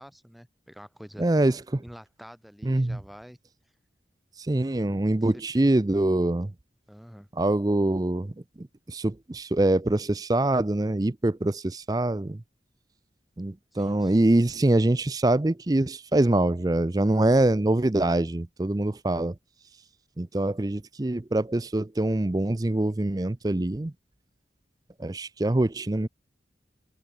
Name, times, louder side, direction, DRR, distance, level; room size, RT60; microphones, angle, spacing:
voice 1, 0.0-1.3 1.8-3.4 5.2-5.7 6.9-7.3 13.7-14.3, equal, ahead, 4.4 m, -47 dB
voice 2, 1.2-1.8 2.6-3.0 4.5-6.5 7.4-8.3 8.6-12.4 13.4-19.3 20.2-23.9 25.0-26.1, right 1 dB, 20° right, 0.5 m, -24 dB
head